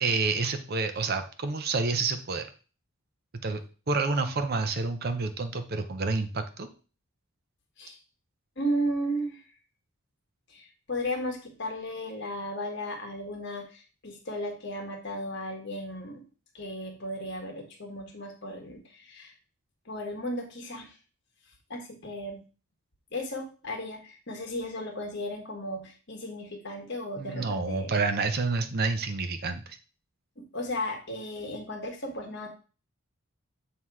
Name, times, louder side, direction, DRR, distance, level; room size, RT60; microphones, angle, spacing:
voice 1, 0.0-2.5 3.4-3.6 3.9-6.7 27.2-29.8, right 4 dB, 45° right, 9 dB, 0.6 m, -29 dB
voice 2, 8.6-9.4 10.5-16.2 16.5-19.3 19.8-20.9 21.7-22.4 23.1-27.9 30.4-32.5, equal, 50° left, 3 dB, 1.4 m, -35 dB
7.6 x 2.9 x 4.7 m, 0.36 s
head